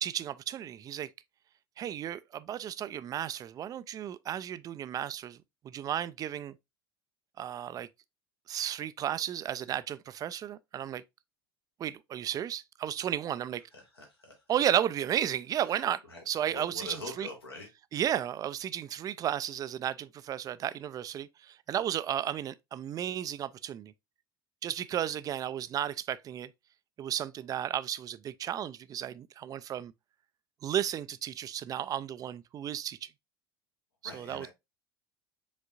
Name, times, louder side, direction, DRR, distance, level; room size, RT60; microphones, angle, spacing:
voice 1, 0.0-1.1 1.8-5.4 5.6-6.6 7.4-7.9 8.5-11.0 11.8-13.6 14.5-17.3 17.9-23.9 24.6-26.5 27.0-29.9 30.6-33.1 34.0-34.5, right 10 dB, 30° right, 0.3 m, -33 dB
voice 2, 14.0-14.3 16.1-16.2 16.5-17.7 34.0-34.5, left 3 dB, 85° left, 1.6 m, -43 dB
5.1 x 3.6 x 2.5 m
figure-of-eight pair, 70°, 13 cm